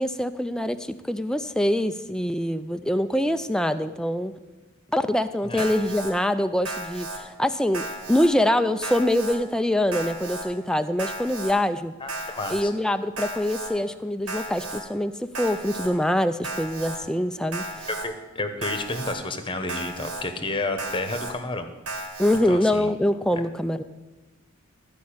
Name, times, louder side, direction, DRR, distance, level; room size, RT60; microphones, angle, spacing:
voice 1, 0.0-4.3 4.9-11.9 12.5-17.9 22.2-23.8, left 1 dB, 5° left, 9 dB, 0.3 m, -24 dB
Alarm, 5.6-6.1 6.6-7.2 7.7-8.3 8.8-9.4 9.9-10.4 11.0-11.5 12.1-12.6 13.2-13.7 14.3-14.8 15.3-15.9 16.4-17.0 17.5-18.0 18.6-19.1 19.7-20.2 20.8-21.3 21.9-22.4, right 2 dB, 80° right, 2.4 m, -34 dB
voice 2, 12.0-12.7 17.9-21.7 22.4-22.9, left 2 dB, 20° left, 8 dB, 0.9 m, -31 dB
13.5 x 5.3 x 8.6 m, 1.2 s
head